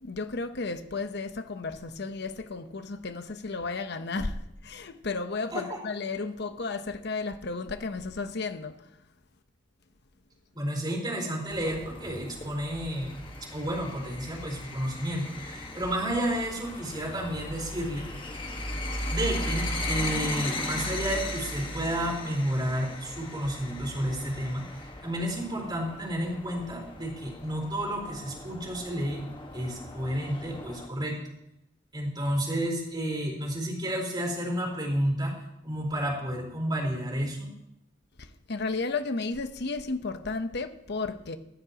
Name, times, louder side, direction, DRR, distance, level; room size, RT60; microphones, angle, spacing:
voice 1, 0.0-8.8 38.2-41.4, left 3 dB, 65° left, 1.0 m, -33 dB
voice 2, 10.5-13.2 13.5-18.1 19.1-24.6 25.0-29.2 29.5-31.2 31.9-35.3 35.6-37.5, equal, 25° right, 4.5 m, -31 dB
sound 1, 11.5-30.9, left 1 dB, 25° left, 1.6 m, -37 dB
18.0 x 14.0 x 3.0 m
head